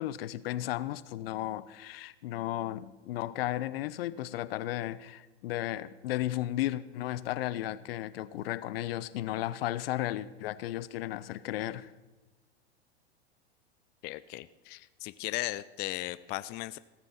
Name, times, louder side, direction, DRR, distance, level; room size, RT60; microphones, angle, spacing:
voice 1, 0.0-11.9, left 14 dB, 65° left, 0.8 m, -34 dB
voice 2, 14.0-16.8, left 17 dB, 30° left, 0.4 m, -37 dB
16.5 x 9.0 x 5.7 m
hypercardioid pair, 100°, 32 cm